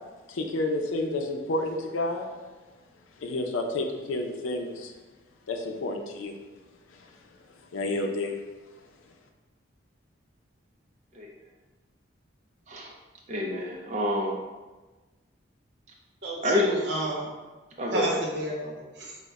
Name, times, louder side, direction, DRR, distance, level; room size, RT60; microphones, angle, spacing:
voice 1, 0.3-2.3 3.2-4.9 5.5-6.3 7.7-8.4, left 2 dB, 85° left, 3 dB, 0.5 m, -30 dB
voice 2, 13.3-14.4 16.4-16.6 17.8-18.2, left 1 dB, 35° right, -1 dB, 0.4 m, -27 dB
voice 3, 16.2-17.3 17.9-19.2, right 1 dB, 60° right, -2 dB, 0.8 m, -30 dB
5.1 x 2.1 x 4.6 m, 1.2 s
head